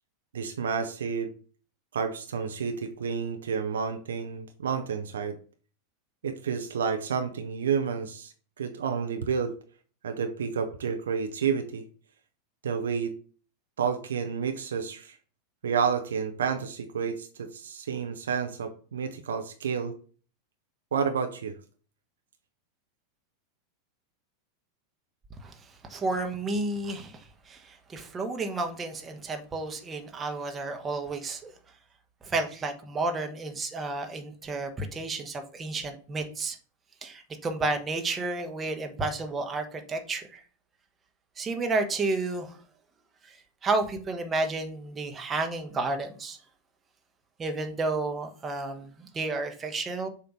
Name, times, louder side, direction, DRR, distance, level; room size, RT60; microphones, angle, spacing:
voice 1, 0.3-1.3 1.9-5.4 6.2-9.5 10.0-11.9 12.6-13.2 13.8-15.2 15.6-20.0 20.9-21.5, right 6 dB, 65° right, 6 dB, 0.7 m, -30 dB
voice 2, 25.9-31.5 32.2-36.6 37.0-40.4 41.4-42.5 43.2-43.4 43.6-46.4 47.4-50.1, right 3 dB, 20° right, 4 dB, 1.1 m, -31 dB
6.8 x 2.9 x 5.2 m, 0.40 s
figure-of-eight pair, 90°, 0 cm